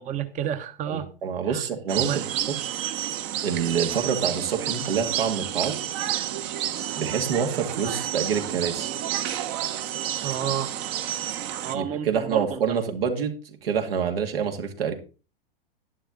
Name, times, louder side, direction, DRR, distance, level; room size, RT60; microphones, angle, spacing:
voice 1, 0.0-1.1 1.5-1.6 2.0-2.3 10.2-10.7 11.6-12.6, right 9 dB, 25° right, 1.0 m, -30 dB
voice 2, 0.9-2.5 3.4-5.7 7.0-8.9 11.7-13.3 13.6-14.9, right 7 dB, 75° right, 2.5 m, -27 dB
sound 1, 1.9-11.7, right 11 dB, 45° right, 1.3 m, -30 dB
11.0 x 11.0 x 3.8 m
hypercardioid pair, 110°, 29 cm